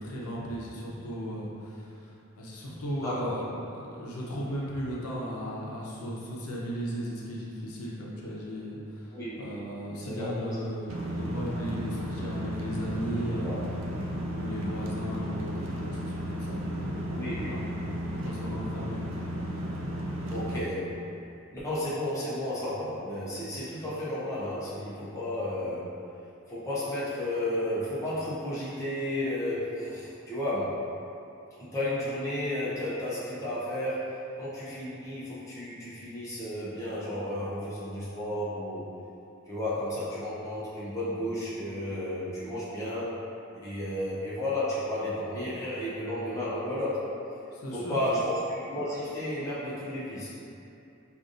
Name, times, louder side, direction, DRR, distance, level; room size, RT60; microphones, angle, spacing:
voice 1, 0.0-13.5 14.3-17.6 18.1-19.0 47.5-48.0, equal, 85° left, -5 dB, 0.7 m, -36 dB
voice 2, 3.0-3.4 9.1-9.4 9.9-10.5 13.4-13.6 17.1-17.5 20.3-21.0 21.5-25.9 26.5-30.9 31.6-38.9 39.5-43.2 43.6-47.1 47.7-50.3, left 1 dB, 15° left, -9 dB, 0.6 m, -33 dB
sound 1, 10.9-20.6, equal, 60° right, 0.3 m, -34 dB
4.9 x 2.5 x 2.5 m, 2.8 s
head